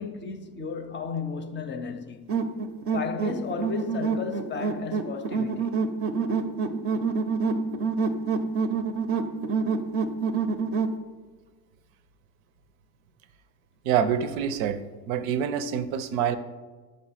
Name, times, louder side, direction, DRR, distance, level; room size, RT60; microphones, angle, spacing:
voice 1, 0.0-2.4 2.9-5.8, left 5 dB, 30° left, 0.5 m, -34 dB
sound 1, 2.3-11.0, right 4 dB, 35° right, 0.6 m, -27 dB
voice 2, 13.8-14.8 15.1-16.4, right 8 dB, 85° right, 0.7 m, -26 dB
5.5 x 5.2 x 5.6 m
supercardioid pair, 105°, 41 cm